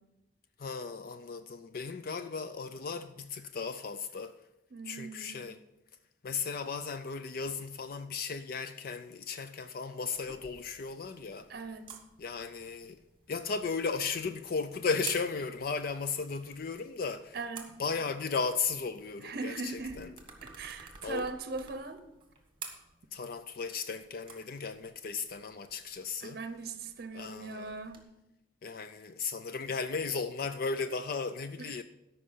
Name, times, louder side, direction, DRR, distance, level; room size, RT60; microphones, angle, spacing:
voice 1, 0.6-4.4 4.8-5.6 6.2-11.5 12.2-13.0 13.3-17.4 17.8-20.1 21.0-21.3 23.1-26.4 27.1-27.8 28.6-31.8, left 5 dB, 50° left, 0.4 m, -35 dB
voice 2, 4.7-5.5 11.5-12.0 17.3-17.8 19.2-22.0 26.2-28.0 31.6-31.8, right 3 dB, 50° right, 0.8 m, -40 dB
sound 1, 10.1-28.0, right 5 dB, 25° right, 1.4 m, -52 dB
13.5 x 5.5 x 5.6 m
head